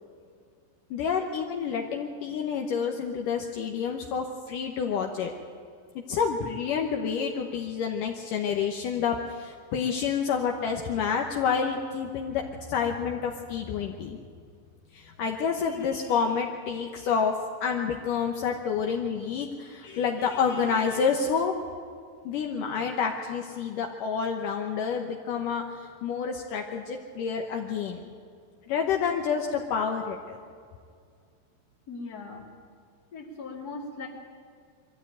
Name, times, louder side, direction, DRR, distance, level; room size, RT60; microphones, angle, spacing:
voice 1, 0.9-5.3 6.1-12.4 12.7-14.2 14.9-17.4 17.6-21.5 22.3-25.6 26.0-28.0 28.7-30.4, left 6 dB, 85° left, 2 dB, 1.8 m, -28 dB
voice 2, 31.9-32.5 33.1-34.1, left 3 dB, 35° left, 1 dB, 1.7 m, -39 dB
23.0 x 14.0 x 9.1 m, 2.2 s
omnidirectional pair, 5.3 m